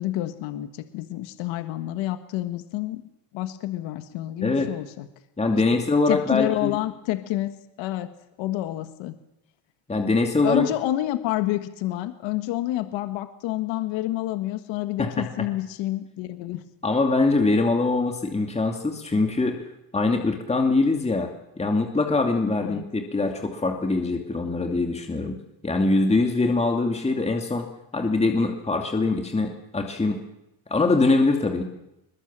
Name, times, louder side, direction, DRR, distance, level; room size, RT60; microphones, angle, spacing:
voice 1, 0.0-3.0 3.3-5.1 5.5-5.6 6.1-8.1 8.4-9.2 10.4-16.6 22.6-22.8, left 15 dB, 80° left, 10 dB, 1.6 m, -28 dB
voice 2, 4.4-4.7 5.4-6.8 9.9-10.7 15.0-15.3 16.8-19.6 19.9-21.3 21.6-25.4 25.6-27.6 27.9-30.2 30.7-31.6, left 3 dB, 15° left, 3 dB, 2.6 m, -23 dB
21.5 x 21.5 x 7.5 m, 0.88 s
cardioid pair, 110°, 45 cm